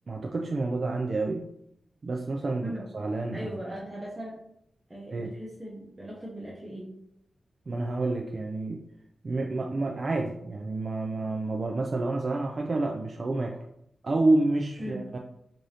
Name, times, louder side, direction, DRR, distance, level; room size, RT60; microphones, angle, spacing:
voice 1, 0.1-1.5 2.0-3.5 5.1-5.3 7.7-8.8 9.2-13.6 14.0-15.2, right 2 dB, 40° right, 1 dB, 0.3 m, -29 dB
voice 2, 3.3-4.3 4.9-6.9 14.8-15.0, equal, 15° right, -5 dB, 0.7 m, -39 dB
4.8 x 2.6 x 2.7 m, 0.75 s
wide cardioid pair, 155°, 0 cm